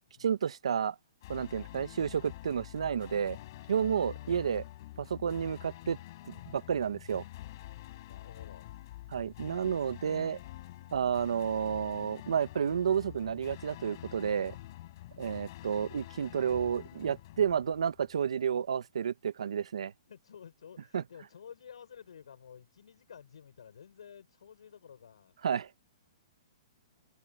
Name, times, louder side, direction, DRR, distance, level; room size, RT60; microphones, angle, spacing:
voice 1, 0.2-1.0 1.3-3.4 3.7-4.6 5.0-6.0 6.3-7.2 9.1-10.4 10.9-14.5 15.2-19.9 20.9-21.0 25.4-25.7, right 7 dB, 80° right, 1.2 m, -31 dB
sound 1, 1.2-18.3, left 16 dB, 40° left, 6.9 m, -47 dB
voice 2, 4.2-4.7 8.0-8.7 20.1-25.3, left 7 dB, 80° left, 6.8 m, -53 dB
hypercardioid pair, 170°, 3 cm